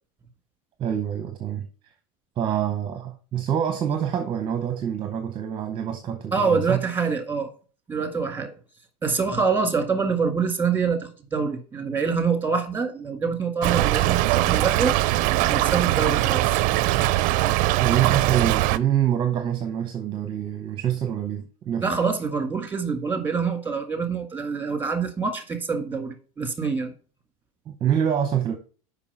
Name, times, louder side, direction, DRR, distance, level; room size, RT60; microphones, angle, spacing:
voice 1, 0.8-1.7 2.4-6.8 17.8-21.9 27.7-28.6, right 9 dB, 25° right, 0.8 m, -26 dB
voice 2, 6.3-7.5 7.9-8.5 9.0-15.0 15.5-16.6 21.8-26.9, right 5 dB, 10° right, 1.8 m, -25 dB
Stream / Trickle dribble, 13.6-18.8, right 17 dB, 45° right, 0.5 m, -21 dB
7.0 x 5.3 x 5.5 m
supercardioid pair, 125°, 18 cm